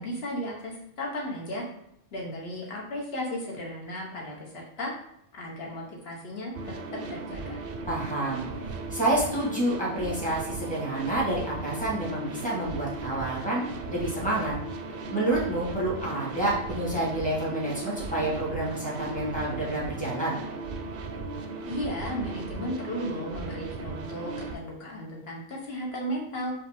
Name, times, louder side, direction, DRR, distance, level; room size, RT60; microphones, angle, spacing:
voice 1, 0.0-1.6 2.1-4.9 5.3-7.6 21.6-26.5, equal, 55° left, -2 dB, 1.3 m, -35 dB
sound 1, 6.5-24.6, right 3 dB, 60° right, 0.7 m, -37 dB
voice 2, 7.9-8.5 8.9-13.6 13.9-14.5 15.1-20.4, right 1 dB, 5° left, -6 dB, 1.4 m, -28 dB
4.9 x 2.7 x 3.5 m, 0.76 s
omnidirectional pair, 1.3 m